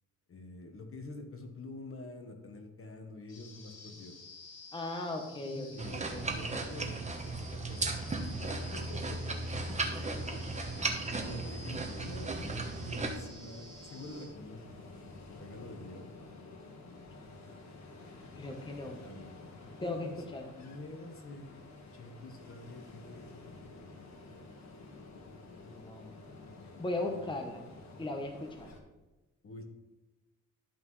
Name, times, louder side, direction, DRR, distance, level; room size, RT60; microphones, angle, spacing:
voice 1, 0.3-4.2 5.4-7.0 7.2-9.4 10.3-10.4 11.2-16.1 19.0-19.4 19.8-20.2 20.6-23.4 27.1-27.2 28.7-28.8 29.4-29.6, left 2 dB, 45° left, 5 dB, 1.3 m, -47 dB
sound 1, 3.3-14.3, left 2 dB, 75° left, 2.8 m, -52 dB
voice 2, 4.7-6.3 18.4-19.0 19.8-20.4 25.7-26.1 26.8-27.6 28.0-28.7, left 2 dB, 15° left, 3 dB, 0.9 m, -38 dB
sound 2, 5.8-13.2, right 3 dB, 20° right, 1.1 m, -36 dB
Ocean, 9.7-28.8, left 3 dB, 60° left, 1.5 m, -51 dB
12.0 x 5.6 x 3.2 m, 1.1 s
cardioid pair, 105°, 31 cm